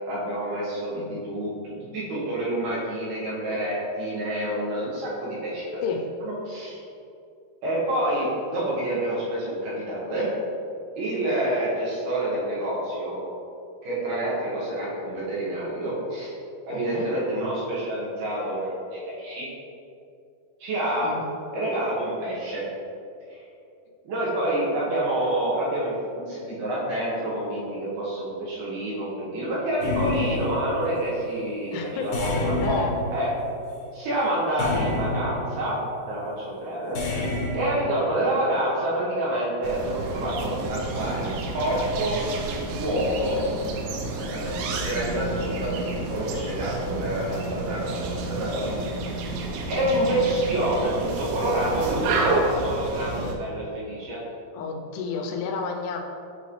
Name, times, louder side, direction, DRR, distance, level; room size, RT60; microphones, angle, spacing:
voice 1, 0.0-5.8 6.2-6.8 7.6-10.3 11.0-13.2 13.8-16.3 16.7-19.5 20.6-21.1 21.5-22.6 23.3-23.4 24.0-32.8 33.1-33.3 33.9-35.8 36.1-37.0 37.5-42.2 42.7-43.4 44.0-49.1 49.7-54.2, right 1 dB, 65° right, -8 dB, 2.9 m, -28 dB
voice 2, 16.7-17.1 21.0-21.2 31.7-32.1 32.6-32.9 54.5-56.0, left 5 dB, 90° left, 3 dB, 3.0 m, -31 dB
sound 1, 29.8-31.1 32.1-33.8 34.6-35.7 37.0-37.8, left 2 dB, 70° left, 2.3 m, -29 dB
sound 2, 39.6-53.4, right 3 dB, 90° right, 3.1 m, -30 dB
8.5 x 4.0 x 3.1 m, 2.6 s
omnidirectional pair, 5.2 m